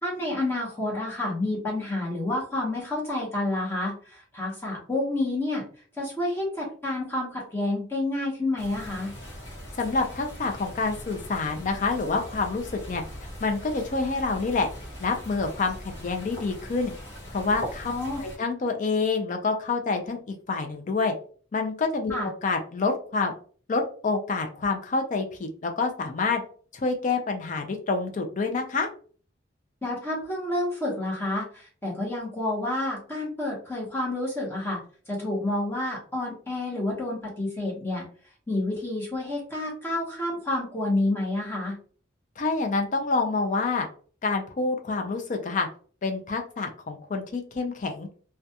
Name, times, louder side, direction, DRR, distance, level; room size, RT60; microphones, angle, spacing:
voice 1, 0.0-5.6 6.0-9.1 17.8-18.2 22.1-22.3 29.8-34.8 35.1-38.0 38.5-41.8, left 2 dB, 15° left, -4 dB, 0.8 m, -29 dB
sound 1, 8.6-18.4, equal, 60° left, 0.9 m, -41 dB
voice 2, 9.7-13.0 13.4-14.7 15.0-16.9 17.3-17.9 18.2-21.1 21.5-23.3 23.7-26.4 26.7-28.9 42.4-43.9 44.2-45.7 46.0-48.1, left 4 dB, 40° left, 4 dB, 0.4 m, -27 dB
2.3 x 2.2 x 2.7 m, 0.42 s
head